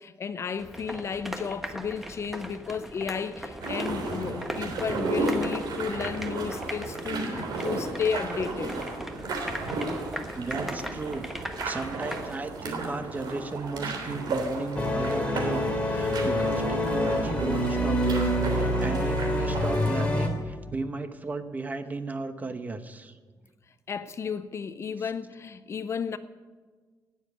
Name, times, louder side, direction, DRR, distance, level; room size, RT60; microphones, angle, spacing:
voice 1, 0.0-8.7 23.9-26.2, left 6 dB, 40° left, 0.6 m, -33 dB
sound 1, 0.6-12.4, equal, 5° right, 1.2 m, -39 dB
sound 2, 3.6-20.1, right 2 dB, 75° right, 3.4 m, -34 dB
voice 2, 10.4-11.3 11.6-23.2, right 3 dB, 20° right, 0.9 m, -35 dB
sound 3, 14.8-20.3, equal, 20° left, 2.6 m, -26 dB
18.0 x 7.1 x 9.5 m
cardioid pair, 145°, 7 cm